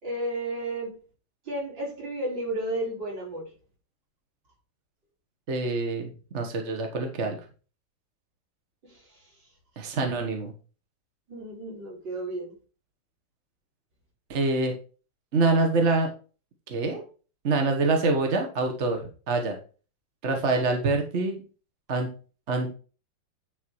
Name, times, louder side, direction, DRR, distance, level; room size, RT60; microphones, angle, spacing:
voice 1, 0.0-0.9 1.5-3.4 8.9-9.0 11.3-12.5, right 1 dB, 75° right, -6 dB, 5.1 m, -32 dB
voice 2, 5.5-7.4 9.8-10.5 14.3-14.7 15.3-16.1 16.7-17.1 17.4-19.6 20.2-21.4 21.9-22.1 22.5-22.7, right 3 dB, 40° right, 4 dB, 1.4 m, -25 dB
9.9 x 4.1 x 4.7 m, 0.37 s
omnidirectional pair, 2.0 m